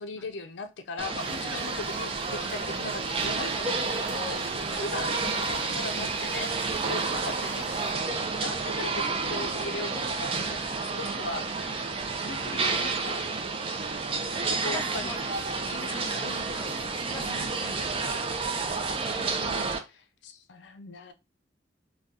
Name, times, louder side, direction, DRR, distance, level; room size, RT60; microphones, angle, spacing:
voice 1, 0.0-11.8 12.2-13.3 14.5-15.2 15.7-16.5 17.2-17.8 19.1-21.1, left 3 dB, 65° left, 0.4 m, -39 dB
sound 1, 1.0-19.8, right 4 dB, 30° right, 0.4 m, -30 dB
sound 2, 1.2-7.9, right 2 dB, 65° right, 0.7 m, -45 dB
voice 2, 14.3-15.2 15.9-16.7 16.9-19.1 19.4-19.5, left 1 dB, 10° left, 0.6 m, -45 dB
2.7 x 2.2 x 3.4 m
head